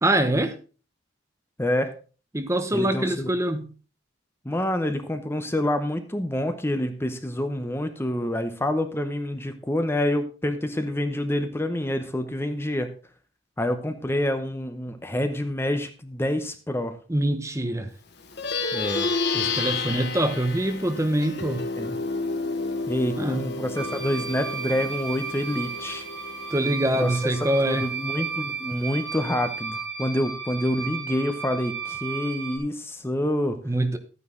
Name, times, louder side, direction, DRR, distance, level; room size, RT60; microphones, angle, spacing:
voice 1, 0.0-0.5 2.3-3.7 17.1-17.9 19.3-21.7 23.2-23.4 26.5-27.9 33.6-34.0, right 1 dB, 15° right, 0.9 m, -24 dB
voice 2, 1.6-1.9 2.7-3.3 4.4-12.9 13.6-16.9 18.7-19.1 21.8-22.0 22.9-26.1 27.0-27.2 27.6-33.6, left 1 dB, 10° left, 0.8 m, -27 dB
Plucked string instrument, 18.2-28.0, left 4 dB, 60° left, 1.3 m, -31 dB
sound 1, 23.7-32.6, right 6 dB, 90° right, 4.9 m, -34 dB
12.0 x 9.7 x 3.8 m
head